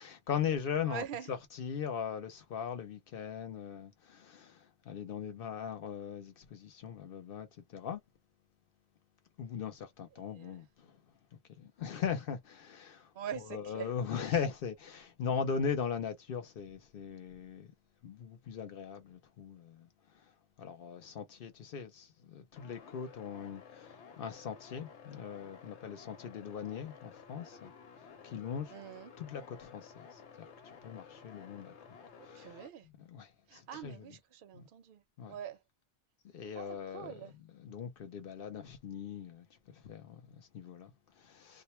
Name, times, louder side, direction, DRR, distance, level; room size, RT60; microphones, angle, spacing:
voice 1, 0.0-8.0 9.4-17.7 18.0-27.7 28.0-28.8 29.2-34.2 34.5-34.7 35.2-35.3 36.3-41.6, left 7 dB, 60° left, 0.8 m, -40 dB
voice 2, 0.9-1.3 10.4-10.6 13.1-13.9 28.7-29.1 32.2-32.9 33.5-35.6 36.6-37.3, right 9 dB, 60° right, 0.6 m, -44 dB
sound 1, 22.6-32.7, left 6 dB, 85° left, 0.9 m, -54 dB
2.1 x 2.1 x 3.0 m
omnidirectional pair, 1.2 m